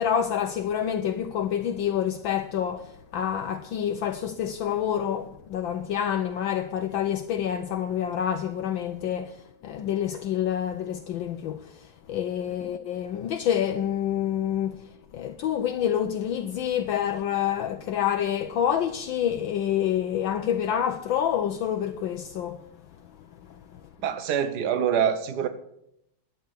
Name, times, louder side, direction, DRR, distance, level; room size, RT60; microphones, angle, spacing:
voice 1, 0.0-9.4 9.6-22.6 23.7-23.8, left 9 dB, 70° left, 1.4 m, -27 dB
voice 2, 24.0-25.5, right 8 dB, 55° right, 1.6 m, -25 dB
11.5 x 9.0 x 8.2 m
omnidirectional pair, 2.4 m